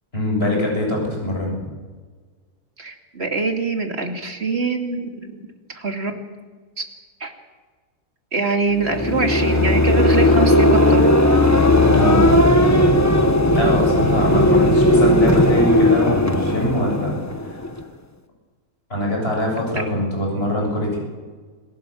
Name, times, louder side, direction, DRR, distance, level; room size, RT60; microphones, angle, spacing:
voice 1, 0.1-1.7 11.9-12.4 13.5-17.2 17.4-17.6 18.9-21.0, left 1 dB, 40° left, 0 dB, 8.1 m, -23 dB
voice 2, 2.8-5.3 5.7-6.1 7.2-7.3 8.3-11.1, right 3 dB, 45° right, 4 dB, 2.8 m, -24 dB
sound 1, 8.8-17.8, left 1 dB, 10° left, 1.2 m, -16 dB
26.5 x 16.5 x 7.5 m, 1.4 s
omnidirectional pair, 1.6 m